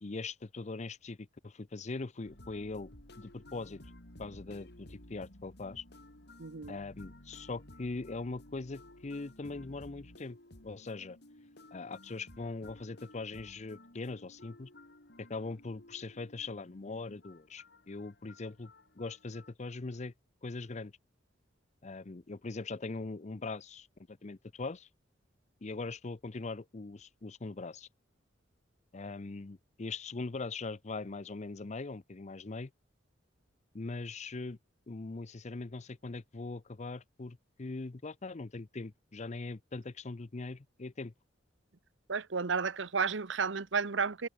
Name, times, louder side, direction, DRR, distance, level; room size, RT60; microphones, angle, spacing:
voice 1, 0.0-2.9 3.2-3.8 4.2-5.8 6.7-10.4 10.6-11.2 11.7-14.7 15.2-20.1 20.4-20.9 21.8-24.9 25.6-27.9 28.9-32.7 33.7-34.6 34.9-41.1, left 3 dB, 35° left, 0.6 m, -41 dB
sound 1, 2.2-19.5, left 1 dB, 60° left, 4.2 m, -55 dB
voice 2, 6.4-6.8 42.1-44.3, right 5 dB, 70° right, 0.9 m, -32 dB
head